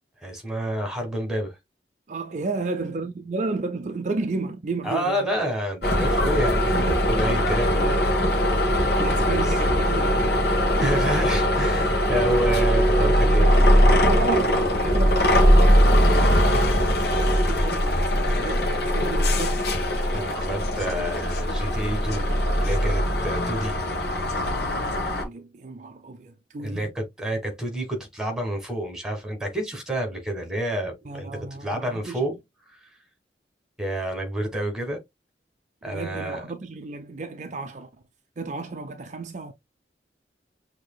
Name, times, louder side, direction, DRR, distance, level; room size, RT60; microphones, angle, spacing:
voice 1, 0.2-1.6 4.8-8.1 9.2-9.5 10.8-13.5 20.1-23.8 26.6-32.4 32.7-32.9 33.8-35.0 35.8-36.4, right 1 dB, 5° right, 1.4 m, -29 dB
voice 2, 2.1-5.3 6.7-7.1 7.7-8.4 9.0-10.3 10.6-11.1 13.0-13.5 13.9-19.7 25.1-26.9 31.1-32.3 35.8-37.9 38.4-39.5, right 3 dB, 40° right, 0.5 m, -33 dB
sound 1, 5.8-25.2, equal, 65° left, 1.2 m, -21 dB
6.2 x 2.8 x 2.2 m
head